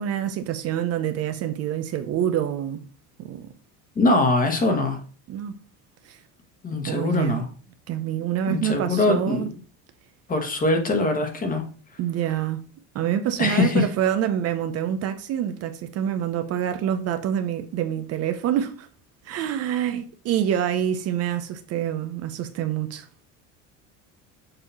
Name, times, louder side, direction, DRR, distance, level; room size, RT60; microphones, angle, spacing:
voice 1, 0.0-2.8 3.2-3.5 5.3-5.6 6.0-6.2 6.9-7.4 7.9-9.5 12.0-12.6 12.9-18.9 19.2-23.1, right 10 dB, 45° right, 0.6 m, -26 dB
voice 2, 3.9-5.0 6.6-7.4 8.5-9.5 10.3-11.6 13.4-13.9, left 2 dB, 25° left, 1.3 m, -22 dB
6.9 x 2.8 x 5.5 m
cardioid pair, 150°, 35 cm